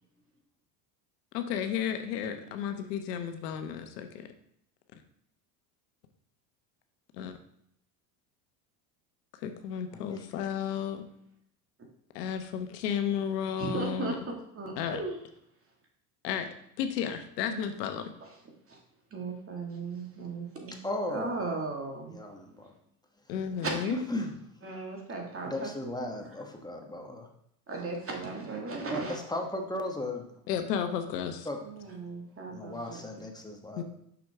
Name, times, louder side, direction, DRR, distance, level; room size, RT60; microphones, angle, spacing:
voice 1, 1.3-4.3 7.1-7.3 9.4-11.0 12.1-14.2 14.8-15.0 16.2-16.5 16.8-18.1 23.3-24.0 30.5-31.5 33.8-33.9, left 8 dB, 80° left, 7 dB, 1.0 m, -33 dB
voice 2, 13.6-14.1 14.6-15.2 17.4-17.6 18.7-18.8 19.1-20.8 21.1-22.2 23.6-23.9 24.6-26.3 27.7-29.2 31.6-33.2, right 3 dB, 30° right, 0 dB, 2.0 m, -37 dB
voice 3, 20.8-21.3 22.1-22.7 24.1-24.3 25.4-27.3 28.9-30.3 31.4-31.6 32.5-33.8, left 1 dB, 10° left, 2 dB, 1.1 m, -36 dB
6.2 x 6.0 x 3.6 m, 0.72 s
hypercardioid pair, 90°, 48 cm